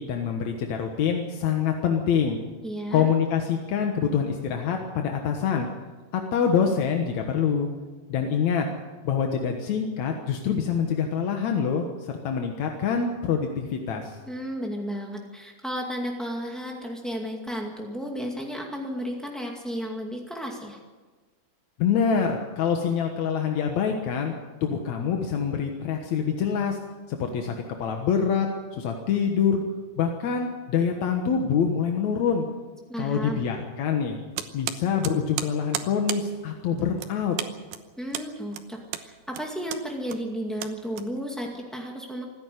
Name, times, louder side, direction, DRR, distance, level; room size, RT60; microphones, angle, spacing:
voice 1, 0.0-2.4 2.9-5.7 6.1-7.7 8.1-8.7 9.0-14.2 21.8-24.3 24.6-26.8 27.1-29.6 30.0-32.5 33.0-34.2 34.5-37.4, left 7 dB, 60° left, 3 dB, 2.1 m, -25 dB
voice 2, 2.6-3.1 14.3-20.8 32.9-33.5 38.0-42.2, equal, ahead, -1 dB, 0.4 m, -33 dB
sound 1, 34.3-41.5, right 11 dB, 75° right, 2.7 m, -35 dB
26.0 x 10.5 x 9.5 m, 1.3 s
omnidirectional pair, 4.6 m